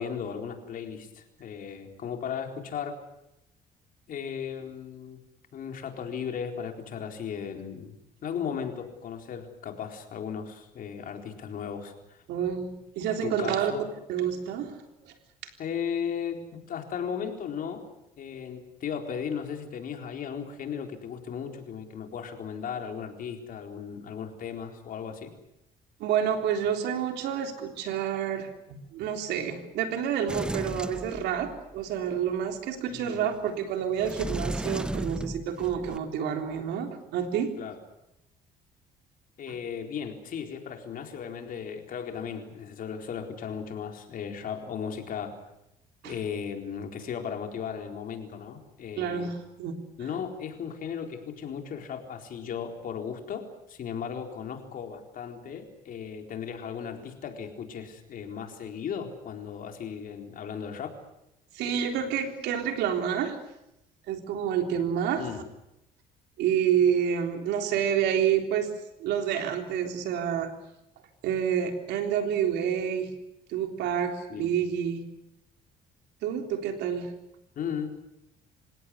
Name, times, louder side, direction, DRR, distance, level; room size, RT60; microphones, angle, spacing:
voice 1, 0.0-3.0 4.1-5.2 5.5-7.9 8.2-12.2 13.2-13.8 15.6-17.8 18.2-25.3 32.9-33.3 35.6-35.7 37.6-37.8 39.4-45.3 46.0-49.3 50.0-60.9 65.2-65.4 74.3-74.6 77.6-77.9, left 7 dB, 55° left, 4 dB, 4.1 m, -36 dB
voice 2, 12.3-13.7 14.1-15.1 15.4-15.5 26.0-37.5 46.0-46.1 49.0-50.1 61.5-63.4 64.1-65.2 66.4-68.7 69.0-70.5 71.2-73.1 73.5-75.0 76.2-77.1, right 8 dB, 85° right, 5 dB, 3.6 m, -28 dB
Sliding door, 30.3-31.8 34.0-36.0, right 1 dB, 5° right, 0.8 m, -34 dB
27.0 x 17.0 x 9.7 m, 0.87 s
cardioid pair, 110°, 17 cm